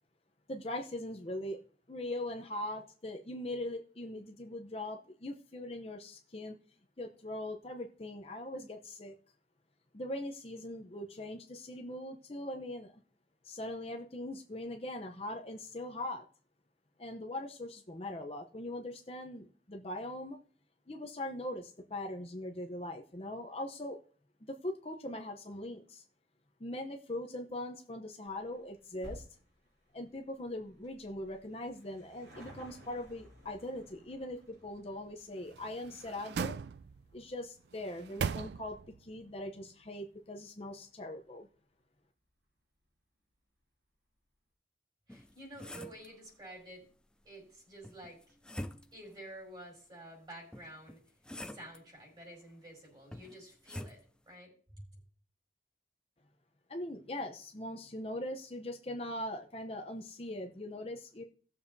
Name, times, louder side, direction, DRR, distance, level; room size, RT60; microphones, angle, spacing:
voice 1, 0.5-1.6 1.9-6.5 7.0-9.1 9.9-13.0 13.4-16.2 17.0-20.4 20.9-24.0 24.5-26.0 26.6-29.3 29.9-36.6 37.1-41.5 56.7-61.2, left 1 dB, 35° left, 3 dB, 0.7 m, -41 dB
sound 1, 28.3-41.0 41.3-41.4 42.3-42.4 42.6-42.7 42.9-43.0, equal, 90° right, 5.5 m, -58 dB
sound 2, 35.5-37.2 37.7-39.0 39.4-39.5, right 6 dB, 70° right, 0.3 m, -39 dB
sound 3, 45.1-46.1 47.8-49.1 50.5-51.8 53.1-54.0, left 1 dB, 5° left, 0.3 m, -45 dB
voice 2, 45.1-46.8 47.2-48.3 48.9-51.0 51.4-54.0 54.2-54.8, right 1 dB, 25° right, 0 dB, 5.2 m, -50 dB
18.5 x 7.0 x 2.7 m, 0.43 s
head